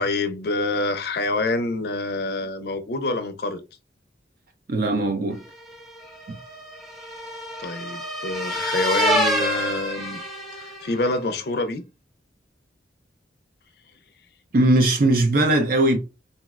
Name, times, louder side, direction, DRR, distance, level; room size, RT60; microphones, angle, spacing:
voice 1, 0.0-3.6 7.6-10.2 10.6-11.8, left 2 dB, 60° left, 0.4 m, -26 dB
voice 2, 4.7-5.4 6.3-6.4 14.5-16.0, right 2 dB, 50° right, 0.5 m, -19 dB
sound 1, 5.6-11.0, equal, ahead, 0.6 m, -27 dB
3.8 x 2.0 x 2.3 m
head